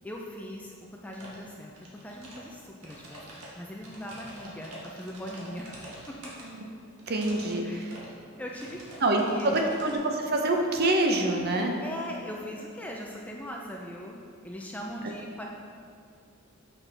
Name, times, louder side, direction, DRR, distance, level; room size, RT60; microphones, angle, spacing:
voice 1, 0.0-0.8 1.0-1.7 2.0-5.8 6.1-6.2 7.6-7.9 8.4-8.9 9.2-9.7 11.8-14.2 14.4-15.5, equal, 5° left, -1 dB, 0.3 m, -40 dB
sound 1, 1.1-1.4 1.7-2.5 2.8-6.4 7.0-7.5 7.8-8.1 8.5-10.0, right 1 dB, 80° right, 1.4 m, -46 dB
voice 2, 7.1-8.0 9.0-11.8, right 2 dB, 45° right, 2 dB, 0.6 m, -26 dB
6.1 x 5.9 x 3.3 m, 2.4 s
head